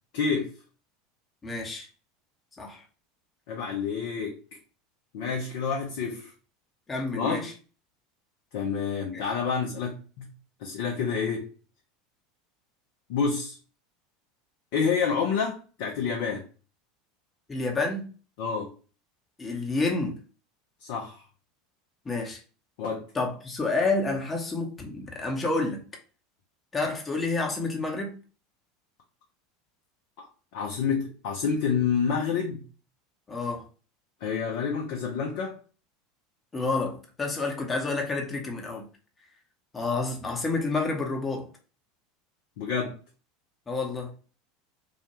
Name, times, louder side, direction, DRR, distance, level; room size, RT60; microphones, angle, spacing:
voice 1, 0.1-0.5 3.5-4.4 5.1-6.3 7.1-7.5 8.5-10.3 10.6-11.5 13.1-13.6 14.7-16.5 18.4-18.7 20.8-21.2 22.8-23.1 30.2-30.3 30.5-32.6 34.2-35.6 42.6-43.0, left 6 dB, 65° left, 0.5 m, -28 dB
voice 2, 1.4-1.9 2.6-2.8 6.9-7.5 9.1-9.2 17.5-18.1 19.4-20.2 22.0-22.4 23.1-25.8 26.7-28.2 33.3-33.6 36.5-38.8 39.7-41.5 43.7-44.1, left 3 dB, 20° left, 0.8 m, -29 dB
2.4 x 2.2 x 2.9 m
hypercardioid pair, 80°, 0 cm